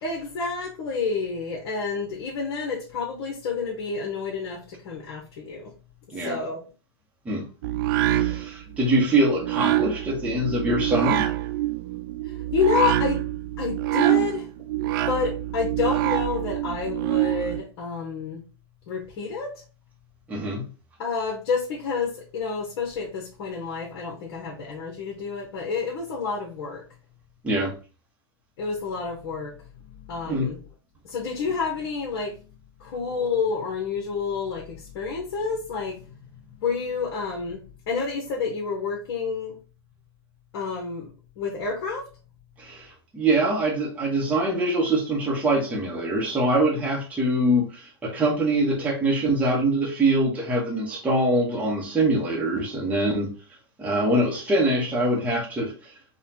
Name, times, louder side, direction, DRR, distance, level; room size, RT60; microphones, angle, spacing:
voice 1, 0.0-5.6 6.2-6.6 12.3-13.2 13.6-14.4 14.8-18.4 18.9-19.5 21.0-26.8 28.6-29.5 30.1-30.6 31.1-32.3 32.8-36.0 36.6-37.6 37.9-39.5 40.5-41.1 41.4-42.0, left 5 dB, 55° left, 1.1 m, -29 dB
sound 1, 7.6-17.6, right 15 dB, 55° right, 0.4 m, -26 dB
voice 2, 8.1-11.2 20.3-20.6 27.4-27.7 30.2-30.5 42.6-53.3 53.8-55.9, right 1 dB, 10° right, 0.9 m, -24 dB
4.0 x 2.2 x 2.7 m
hypercardioid pair, 125°, 13 cm